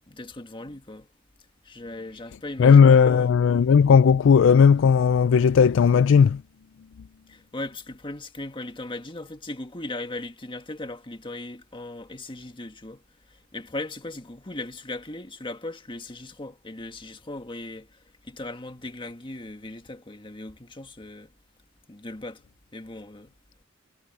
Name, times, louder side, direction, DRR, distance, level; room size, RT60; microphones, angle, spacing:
voice 1, 0.1-1.1 1.6-3.3 7.3-13.0 13.5-17.9 18.2-21.3 21.9-22.4 22.7-23.3, left 2 dB, 25° left, 1.6 m, -38 dB
voice 2, 2.6-6.4, left 6 dB, 65° left, 0.3 m, -16 dB
head